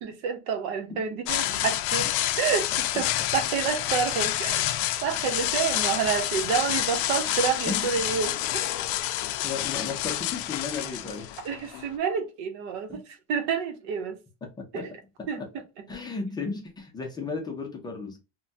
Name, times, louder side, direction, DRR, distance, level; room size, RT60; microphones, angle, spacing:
voice 1, 0.0-2.1 2.4-8.8 11.4-13.0 13.3-14.2 14.7-14.9 15.3-15.4, right 7 dB, 75° right, 0.8 m, -29 dB
sound 1, 1.3-11.9, left 14 dB, 75° left, 0.4 m, -28 dB
voice 2, 7.7-8.1 9.4-11.3 12.9-13.0 14.4-15.5 15.9-18.2, left 4 dB, 15° left, 0.5 m, -35 dB
3.2 x 2.2 x 2.6 m
cardioid pair, 175°, 30 cm